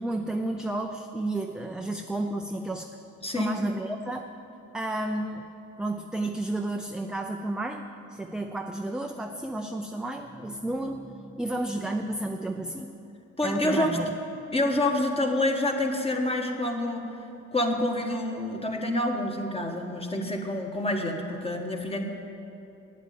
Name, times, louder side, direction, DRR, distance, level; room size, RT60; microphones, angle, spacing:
voice 1, 0.0-2.9 3.3-4.3 4.7-5.5 5.8-13.2 13.4-14.1, right 2 dB, 5° right, 4 dB, 0.5 m, -32 dB
voice 2, 3.2-3.6 13.4-14.0 14.5-17.1 17.5-22.0, left 1 dB, 20° left, 2 dB, 1.5 m, -27 dB
9.2 x 8.1 x 9.2 m, 2.8 s
cardioid pair, 90°, 30 cm